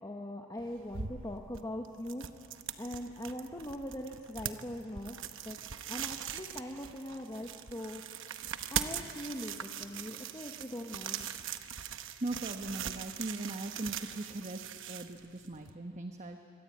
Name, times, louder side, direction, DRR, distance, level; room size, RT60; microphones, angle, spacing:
voice 1, 0.0-5.2 5.4-8.0 8.7-11.3, left 1 dB, 15° left, 1 dB, 1.2 m, -41 dB
sound 1, 0.6-15.7, right 8 dB, 60° right, 1.0 m, -41 dB
voice 2, 12.2-16.4, right 2 dB, 30° right, 5 dB, 1.1 m, -39 dB
25.0 x 25.0 x 8.7 m, 2.5 s
head